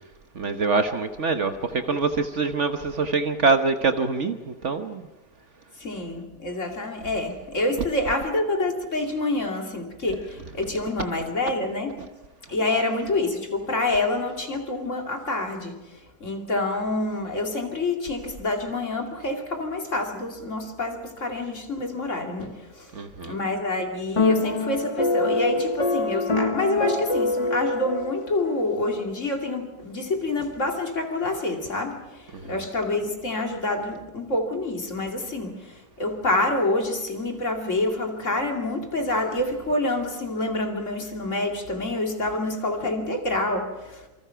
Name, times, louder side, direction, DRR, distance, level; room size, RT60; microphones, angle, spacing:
voice 1, 0.3-5.1 22.9-23.4 32.3-32.6, right 4 dB, 50° right, 7 dB, 1.4 m, -25 dB
voice 2, 5.8-11.9 12.5-22.9 23.2-44.1, left 2 dB, 50° left, 2 dB, 3.0 m, -27 dB
sound 1, 24.2-28.6, left 2 dB, 25° left, 0.8 m, -25 dB
27.5 x 25.0 x 5.8 m, 1.1 s
omnidirectional pair, 1.7 m